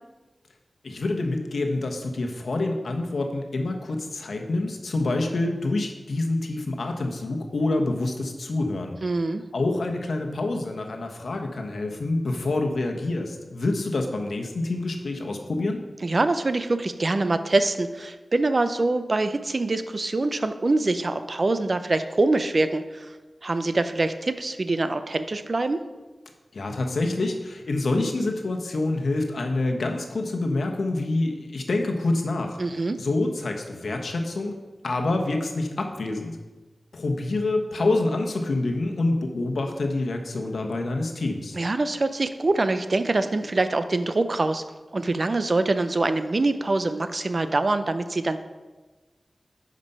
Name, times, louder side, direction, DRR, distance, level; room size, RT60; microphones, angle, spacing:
voice 1, 0.8-9.0 9.5-15.8 26.5-32.6 33.0-34.5 34.8-36.4 36.9-41.6, left 2 dB, 90° left, 3 dB, 1.1 m, -27 dB
voice 2, 9.0-9.4 16.0-23.1 23.4-25.8 32.6-33.0 41.5-44.6 44.9-48.4, right 2 dB, 50° right, 10 dB, 0.5 m, -24 dB
9.7 x 5.2 x 5.4 m, 1.2 s
wide cardioid pair, 95°, 0 cm